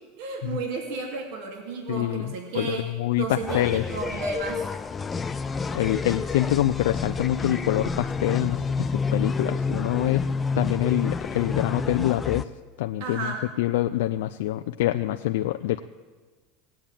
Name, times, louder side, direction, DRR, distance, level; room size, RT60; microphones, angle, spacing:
voice 1, 0.2-4.7 13.0-13.4, right 4 dB, 65° right, 1 dB, 2.7 m, -33 dB
voice 2, 1.9-3.8 5.7-10.2 10.6-12.5 12.8-13.3 13.6-15.8, left 15 dB, 85° left, 7 dB, 0.5 m, -25 dB
sound 1, 3.5-12.4, left 4 dB, 15° left, 0.5 m, -29 dB
18.5 x 8.7 x 9.1 m, 1.4 s
supercardioid pair, 155°, 0 cm